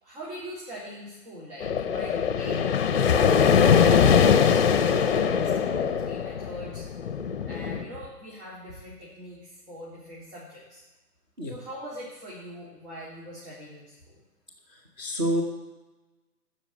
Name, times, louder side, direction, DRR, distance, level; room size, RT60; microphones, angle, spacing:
voice 1, 0.0-2.8 3.1-6.9 7.5-10.8 11.4-14.2, equal, 45° right, -7 dB, 3.7 m, -42 dB
sound 1, 1.6-7.8, left 7 dB, 40° left, 0.7 m, -22 dB
voice 2, 14.7-15.4, right 1 dB, 15° right, -3 dB, 0.7 m, -28 dB
10.0 x 6.1 x 7.9 m, 1.1 s
hypercardioid pair, 155°, 49 cm